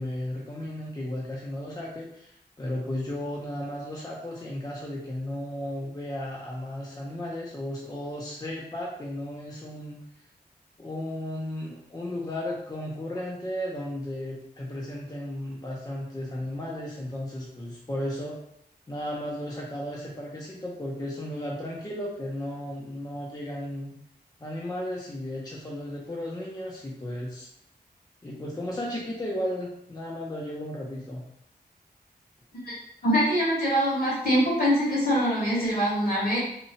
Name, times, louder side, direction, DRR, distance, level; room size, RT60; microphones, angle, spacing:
voice 1, 0.0-10.0 10.8-18.4 18.9-23.9 24.4-27.5 28.2-31.2, left 1 dB, 25° left, -3 dB, 0.5 m, -34 dB
voice 2, 33.0-36.4, equal, 65° left, -5 dB, 1.4 m, -23 dB
2.9 x 2.3 x 2.7 m, 0.72 s
wide cardioid pair, 70°, 17 cm